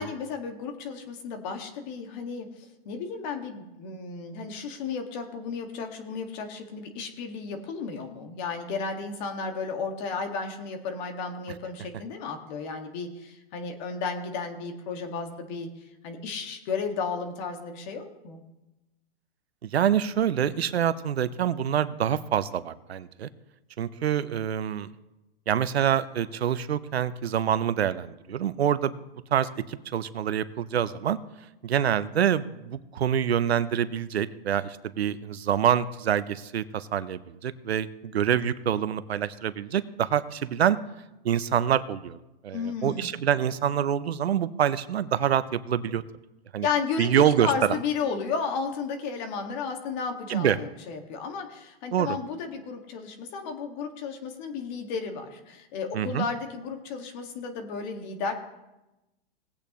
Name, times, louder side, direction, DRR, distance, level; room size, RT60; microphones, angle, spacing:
voice 1, 0.0-15.7 16.0-18.4 42.5-43.1 46.6-58.3, left 5 dB, 45° left, 5 dB, 1.9 m, -33 dB
voice 2, 19.6-23.3 23.8-24.9 25.5-28.9 29.3-31.2 31.6-40.8 41.2-42.2 42.4-46.0 46.5-46.7 47.0-47.5 50.3-50.6 51.9-52.2 55.9-56.3, right 9 dB, 90° right, 14 dB, 0.8 m, -26 dB
19.0 x 8.6 x 3.1 m, 0.99 s
hypercardioid pair, 135°, 31 cm